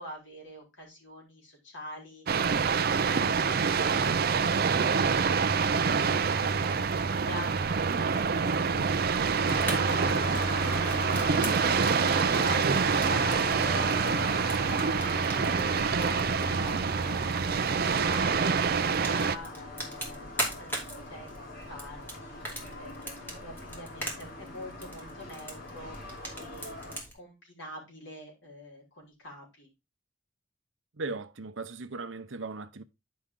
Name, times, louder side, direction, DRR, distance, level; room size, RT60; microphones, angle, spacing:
voice 1, 0.0-9.8 10.6-14.3 14.7-17.4 17.7-21.4 21.7-26.8 27.1-29.7, left 1 dB, 75° left, 4.1 m, -46 dB
sound 1, 2.3-19.4, right 5 dB, 55° right, 0.5 m, -26 dB
Fire, 9.1-27.1, right 1 dB, 10° left, 2.5 m, -42 dB
sound 2, 9.5-27.0, left 2 dB, 55° left, 3.2 m, -40 dB
voice 2, 30.9-32.8, right 3 dB, 85° right, 0.8 m, -37 dB
9.8 x 5.2 x 3.7 m
head